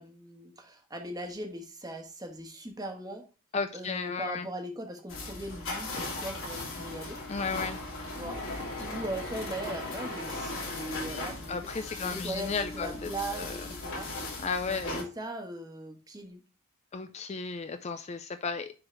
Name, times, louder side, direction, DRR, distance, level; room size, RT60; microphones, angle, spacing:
voice 1, 0.0-3.2 3.7-7.2 8.1-11.7 12.0-14.1 14.7-16.4, right 1 dB, 15° right, 4 dB, 1.2 m, -39 dB
voice 2, 3.5-4.5 7.3-7.8 11.5-13.5 14.4-15.0 16.9-18.7, left 5 dB, 30° left, 10 dB, 0.4 m, -34 dB
sound 1, 5.1-15.0, left 2 dB, 60° left, 3.2 m, -38 dB
10.0 x 4.0 x 3.2 m, 0.34 s
head